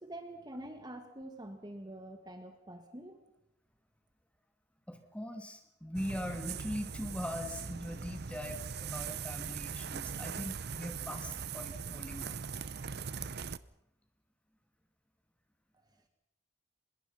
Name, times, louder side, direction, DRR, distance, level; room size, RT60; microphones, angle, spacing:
voice 1, 0.0-3.2 15.7-15.9, right 1 dB, 20° right, 6 dB, 1.9 m, -46 dB
voice 2, 4.9-12.4, equal, 5° left, 5 dB, 2.5 m, -41 dB
sound 1, 5.9-13.6, right 6 dB, 55° right, 0.7 m, -40 dB
25.0 x 21.5 x 5.7 m, 0.79 s
head